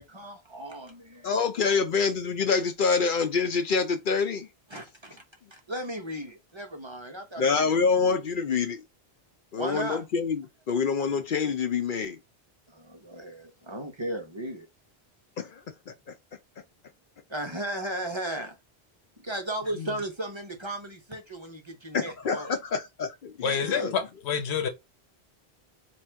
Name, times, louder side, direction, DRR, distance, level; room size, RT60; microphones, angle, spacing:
voice 1, 0.0-1.3 4.7-5.2 5.5-8.1 9.5-10.0 12.7-14.7 17.3-18.5 19.2-22.5 23.4-23.9, right 1 dB, 30° right, 0.8 m, -36 dB
voice 2, 1.2-4.5 7.4-8.8 9.5-12.2 15.4-16.1 19.8-19.9 21.9-23.3 23.6-23.9, left 5 dB, 60° left, 0.7 m, -26 dB
voice 3, 23.4-24.7, left 6 dB, 85° left, 1.1 m, -28 dB
3.0 x 2.6 x 4.4 m
omnidirectional pair, 1.1 m